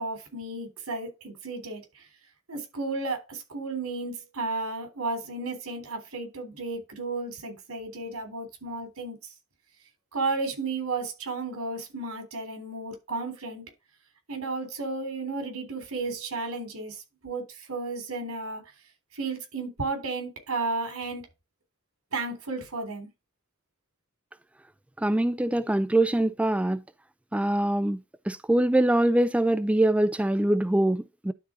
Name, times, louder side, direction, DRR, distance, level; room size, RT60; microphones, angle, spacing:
voice 1, 0.0-2.0 2.5-9.2 10.1-13.6 14.3-18.6 19.1-21.2 22.1-23.1, right 3 dB, 80° right, 3.5 m, -33 dB
voice 2, 25.0-26.8 27.3-31.3, right 1 dB, 5° right, 0.3 m, -24 dB
11.5 x 4.1 x 3.8 m
head